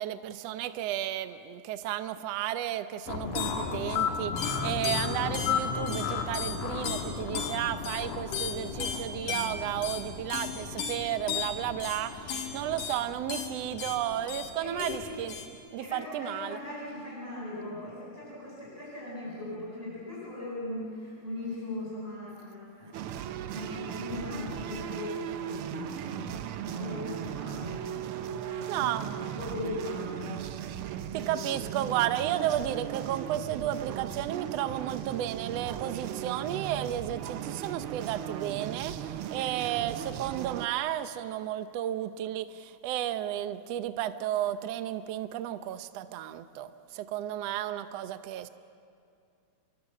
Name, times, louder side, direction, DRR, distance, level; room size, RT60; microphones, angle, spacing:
voice 1, 0.0-15.4 15.7-16.6 28.7-29.1 31.1-48.5, right 12 dB, 70° right, 10 dB, 1.7 m, -33 dB
sound 1, 3.1-15.5, left 6 dB, 80° left, 3.3 m, -33 dB
voice 2, 14.6-15.1 15.8-23.1 23.5-30.5 31.1-31.6, left 2 dB, 10° right, -7 dB, 8.0 m, -39 dB
sound 2, 22.9-40.7, right 10 dB, 85° right, 1.2 m, -37 dB
27.5 x 23.0 x 7.5 m, 2.5 s
omnidirectional pair, 3.5 m